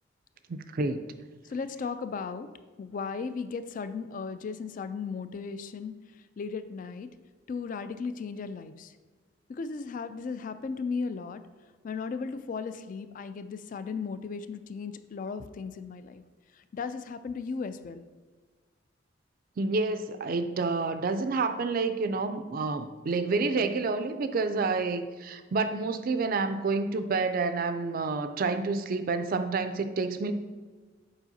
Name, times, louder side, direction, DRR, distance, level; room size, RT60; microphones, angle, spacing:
voice 1, 0.5-1.0 19.6-30.3, right 3 dB, 45° right, 9 dB, 0.4 m, -29 dB
voice 2, 1.4-2.5 2.8-5.9 6.4-7.1 7.5-8.9 9.5-11.4 11.8-16.2 16.7-18.0, left 5 dB, 45° left, 11 dB, 0.3 m, -36 dB
7.2 x 5.0 x 2.7 m, 1.4 s
head